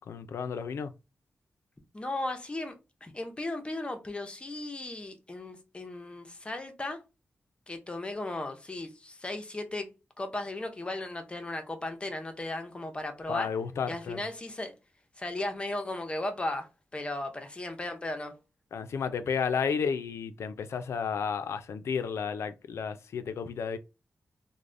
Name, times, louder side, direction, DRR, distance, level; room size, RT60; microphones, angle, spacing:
voice 1, 0.1-0.9 13.3-14.2 18.7-23.8, left 6 dB, 85° left, 0.3 m, -32 dB
voice 2, 1.9-2.8 3.0-7.0 7.7-9.9 10.2-13.5 13.9-14.7 15.2-18.3, left 2 dB, 25° left, 0.5 m, -36 dB
3.2 x 2.0 x 2.5 m
wide cardioid pair, 120°, 5 cm